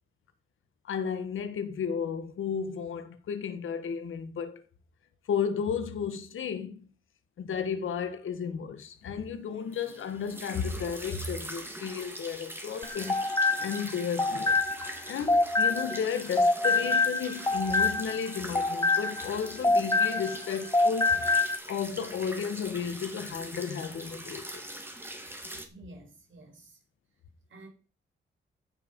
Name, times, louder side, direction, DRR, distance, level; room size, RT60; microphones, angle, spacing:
voice 1, 0.8-4.6 5.3-6.9 7.4-13.2 13.6-14.6 15.1-21.3 21.7-24.6, left 7 dB, 90° left, 1.5 m, -33 dB
sound 1, 9.7-25.7, right 1 dB, 10° right, 2.3 m, -42 dB
sound 2, 12.8-16.1 16.4-20.5 20.7-21.6, left 3 dB, 15° left, 1.1 m, -26 dB
voice 2, 25.7-26.8 27.5-27.7, right 2 dB, 75° right, 5.1 m, -50 dB
15.0 x 6.0 x 5.3 m
cardioid pair, 90°, 20 cm